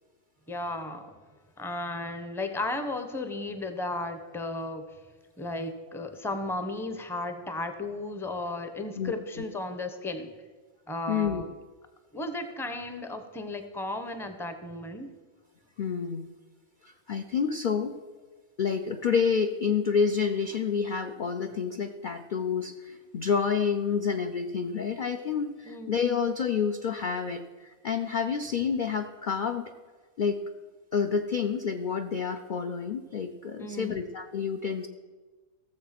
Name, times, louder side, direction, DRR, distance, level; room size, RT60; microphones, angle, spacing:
voice 1, 0.5-1.1 1.6-4.9 5.4-10.3 10.9-11.5 12.1-15.1 25.7-25.9 33.6-34.0, left 2 dB, ahead, 8 dB, 0.7 m, -34 dB
voice 2, 9.0-9.4 11.1-11.4 15.8-16.3 16.8-18.0 18.6-29.7 30.2-30.4 30.9-34.9, left 6 dB, 50° left, 5 dB, 0.6 m, -29 dB
16.0 x 7.3 x 5.9 m, 1.4 s
omnidirectional pair, 1.5 m